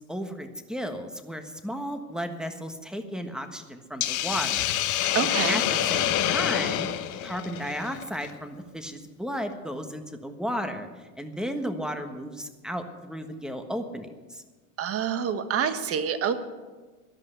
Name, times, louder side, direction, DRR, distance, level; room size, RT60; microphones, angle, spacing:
voice 1, 0.0-4.7 4.9-6.9 7.2-10.9 11.2-14.4, equal, ahead, 7 dB, 1.4 m, -34 dB
Hiss, 4.0-8.3, left 12 dB, 45° left, 1.1 m, -27 dB
voice 2, 5.1-5.6 14.8-16.4, right 7 dB, 35° right, 10 dB, 1.4 m, -27 dB
14.0 x 11.0 x 8.1 m, 1.3 s
supercardioid pair, 120°, 41 cm